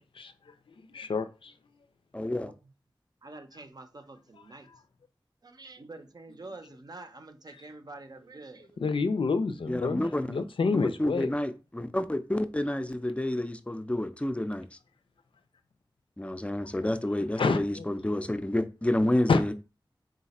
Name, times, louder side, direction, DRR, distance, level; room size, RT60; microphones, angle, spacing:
voice 1, 0.0-1.5 4.7-4.8 7.5-7.6 8.8-11.3 17.4-17.9 19.3-19.5, left 4 dB, 90° left, 0.4 m, -29 dB
voice 2, 2.1-2.5 9.7-10.4 10.7-14.8 16.2-19.5, left 1 dB, 15° left, 0.4 m, -29 dB
voice 3, 3.2-4.7 5.4-8.8, right 2 dB, 50° right, 0.6 m, -47 dB
3.9 x 2.4 x 4.1 m
wide cardioid pair, 70°, 9 cm